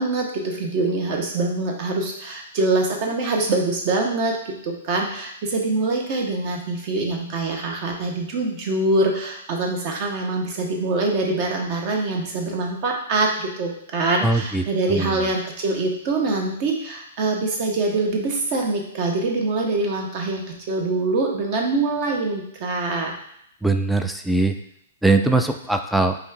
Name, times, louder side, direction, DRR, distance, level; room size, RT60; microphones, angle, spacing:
voice 1, 0.0-23.1, right 2 dB, 45° right, 1 dB, 1.1 m, -24 dB
voice 2, 14.2-14.6 14.9-15.1 23.6-24.6 25.0-26.2, right 3 dB, ahead, 6 dB, 0.3 m, -20 dB
5.0 x 2.5 x 3.3 m, 0.72 s
hypercardioid pair, 120°, 0 cm